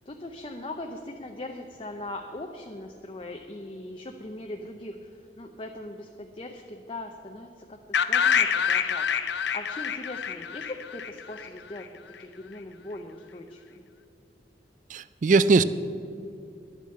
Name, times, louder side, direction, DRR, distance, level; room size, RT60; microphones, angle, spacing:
voice 1, 0.1-9.0 9.4-11.9 12.2-13.8, left 1 dB, 30° left, 3 dB, 0.6 m, -40 dB
sound 1, 7.9-11.8, left 7 dB, 75° left, 0.6 m, -26 dB
voice 2, 14.9-15.6, right 4 dB, 45° right, 15 dB, 0.4 m, -20 dB
10.5 x 8.5 x 7.6 m, 2.6 s
head